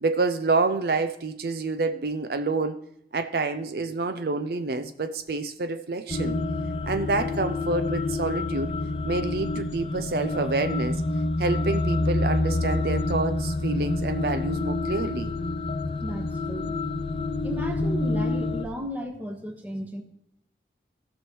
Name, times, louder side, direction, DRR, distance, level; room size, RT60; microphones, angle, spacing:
voice 1, 0.0-2.8 3.1-6.4 6.8-8.7 9.0-11.0 11.4-15.3, right 3 dB, 60° right, 8 dB, 0.5 m, -28 dB
sound 1, 6.1-18.6, left 2 dB, 30° left, 0.5 m, -28 dB
voice 2, 16.0-16.7 17.4-20.0, equal, 10° right, 2 dB, 1.2 m, -34 dB
16.5 x 6.2 x 3.1 m, 0.79 s
head